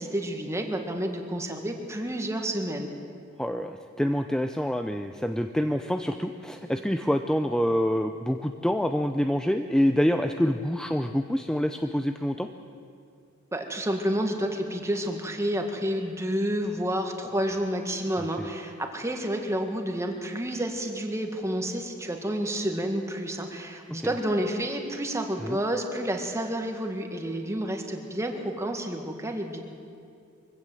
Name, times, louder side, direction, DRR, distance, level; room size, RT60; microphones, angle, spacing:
voice 1, 0.0-2.9 13.5-29.6, right 1 dB, 15° right, 3 dB, 1.9 m, -30 dB
voice 2, 3.4-12.5 24.0-24.1 25.4-25.6, equal, 5° left, 7 dB, 0.5 m, -26 dB
23.5 x 16.0 x 7.9 m, 2.5 s
head